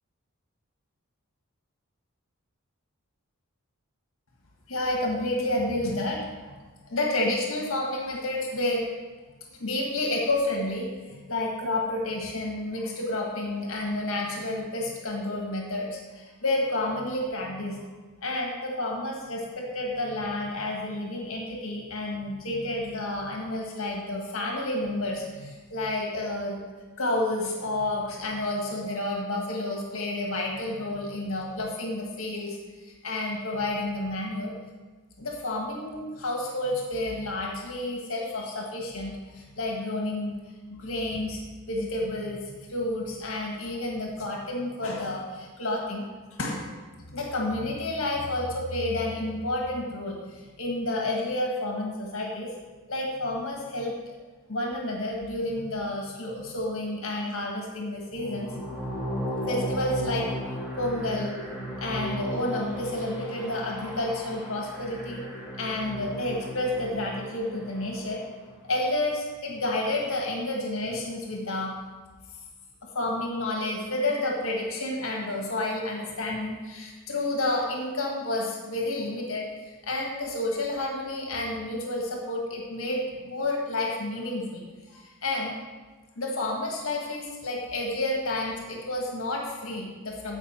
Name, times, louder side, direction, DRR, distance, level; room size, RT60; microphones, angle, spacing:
voice 1, 4.7-6.5 6.8-8.9 9.5-17.9 18.2-26.6 27.0-32.6 33.0-34.5 35.2-40.4 40.7-41.4 41.7-46.0 46.4-46.7 47.0-52.5 52.9-54.0 54.5-58.6 59.5-60.3 60.8-61.4 61.8-65.2 65.6-68.2 68.7-71.7 72.9-85.5 86.1-90.4, left 1 dB, 65° left, -1 dB, 1.7 m, -30 dB
sound 1, 58.1-68.3, equal, 10° right, 2.3 m, -35 dB
15.0 x 5.3 x 4.3 m, 1.3 s
head